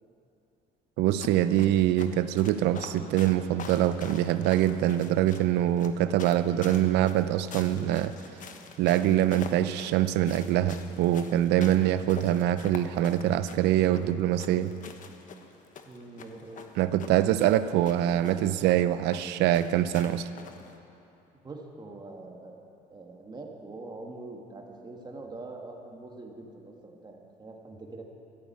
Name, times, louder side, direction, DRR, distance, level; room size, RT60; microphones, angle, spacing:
voice 1, 1.0-8.1 8.8-14.7 16.8-20.3, right 12 dB, 90° right, 13 dB, 0.6 m, -24 dB
sound 1, 1.2-20.8, left 6 dB, 50° left, 1.3 m, -46 dB
voice 2, 15.9-16.7 21.4-22.6 22.9-28.1, right 2 dB, 25° right, 1 dB, 1.9 m, -44 dB
13.5 x 10.5 x 8.9 m, 2.8 s
cardioid pair, 110°, 17 cm